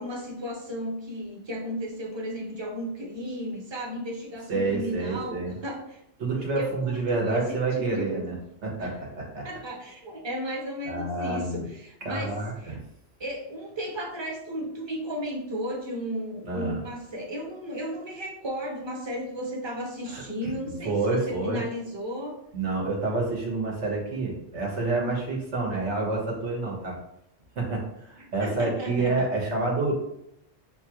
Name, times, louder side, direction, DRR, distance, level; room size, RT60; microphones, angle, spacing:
voice 1, 0.0-6.0 6.4-8.3 8.8-9.0 9.4-12.8 13.2-22.4 28.2-29.3, equal, 25° right, -1 dB, 0.8 m, -34 dB
voice 2, 4.5-5.6 6.2-8.4 8.6-9.5 10.9-11.7 12.0-12.8 16.4-16.8 20.1-20.2 20.8-21.6 22.5-27.0 27.5-29.9, right 3 dB, 80° right, -1 dB, 1.5 m, -28 dB
6.4 x 2.4 x 2.9 m, 0.78 s
omnidirectional pair, 1.2 m